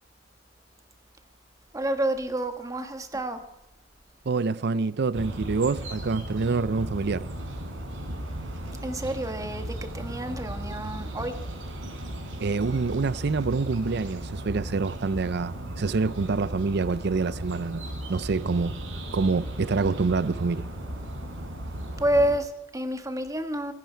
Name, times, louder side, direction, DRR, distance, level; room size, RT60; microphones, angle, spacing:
voice 1, 1.7-3.4 8.8-11.3 22.0-23.7, right 1 dB, 15° right, 1.4 m, -28 dB
voice 2, 4.3-7.3 12.4-18.8 19.1-20.7, right 4 dB, 60° right, 0.5 m, -26 dB
sound 1, 5.1-22.4, right 1 dB, 90° right, 3.8 m, -36 dB
24.5 x 10.5 x 4.6 m
head